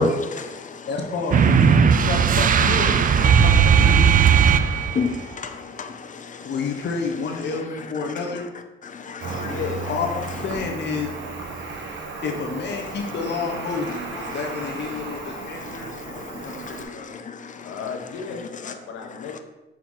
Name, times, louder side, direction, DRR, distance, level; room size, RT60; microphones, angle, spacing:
voice 1, 0.0-0.9 4.4-6.5 8.9-9.6 15.4-17.8 19.3-19.4, left 3 dB, 40° left, 0.8 m, -31 dB
voice 2, 0.9-4.0 6.4-8.4 9.9-11.1 12.2-17.1, left 4 dB, 60° left, 1.0 m, -29 dB
sound 1, 1.3-5.2, right 7 dB, 45° right, 0.4 m, -16 dB
Cricket, 9.2-16.8, right 3 dB, 70° right, 1.3 m, -34 dB
voice 3, 9.4-9.8 17.6-19.4, left 6 dB, 80° left, 1.1 m, -33 dB
6.1 x 4.5 x 4.0 m
cardioid pair, 90°, 20 cm